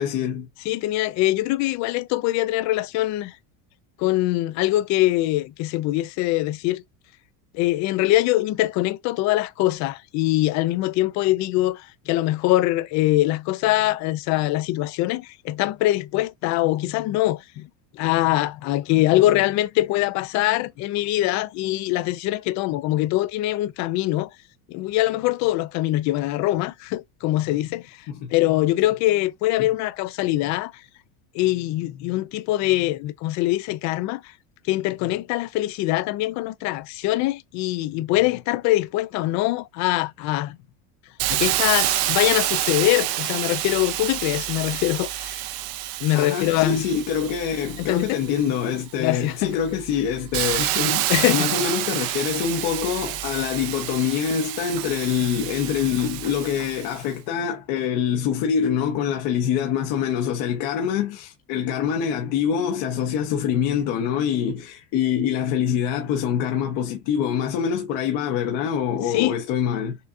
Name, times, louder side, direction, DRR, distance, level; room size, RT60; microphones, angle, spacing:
voice 1, 0.0-0.5 28.1-28.3 46.1-70.0, left 8 dB, 55° left, 1.1 m, -25 dB
voice 2, 0.7-3.3 4.0-6.8 7.5-17.7 17.9-24.3 24.7-27.8 28.3-30.7 31.3-34.2 34.7-40.6 41.3-45.4 46.0-46.9 47.8-48.2 49.0-49.5 51.1-51.5 69.1-69.4, left 16 dB, 40° left, 0.4 m, -23 dB
Hiss, 41.2-48.8 49.3-57.0, right 15 dB, 60° right, 0.7 m, -28 dB
6.6 x 2.3 x 2.5 m
cardioid pair, 145°, 44 cm